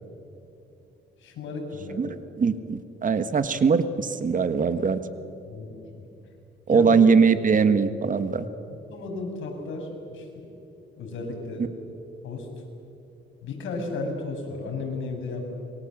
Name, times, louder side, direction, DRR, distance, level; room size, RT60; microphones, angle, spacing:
voice 1, 1.2-2.1 5.4-6.0 6.7-6.9 8.7-10.5 11.0-11.7 12.2-12.5 13.4-15.4, left 3 dB, 75° left, 2 dB, 6.5 m, -34 dB
voice 2, 2.4-5.0 6.7-8.4, right 5 dB, 40° right, 11 dB, 1.7 m, -21 dB
27.5 x 23.5 x 7.6 m, 2.8 s
cardioid pair, 90°, 20 cm